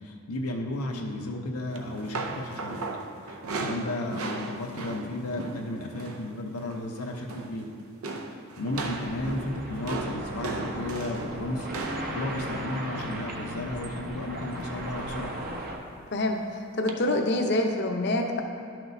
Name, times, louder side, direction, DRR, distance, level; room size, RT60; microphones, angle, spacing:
voice 1, 0.0-2.8 3.3-7.7 8.3-15.3, left 1 dB, 90° left, 0 dB, 0.8 m, -34 dB
sound 1, 1.7-6.3 6.5-6.9 7.2-7.7 8.0-14.1 14.9-15.3 15.6-15.8 16.9-17.0, right 3 dB, 75° right, 0.6 m, -37 dB
sound 2, 8.7-15.8, right 1 dB, 40° right, 0.8 m, -37 dB
voice 2, 16.1-18.4, left 1 dB, 50° left, 3 dB, 0.7 m, -26 dB
12.0 x 6.0 x 2.7 m, 2.6 s
head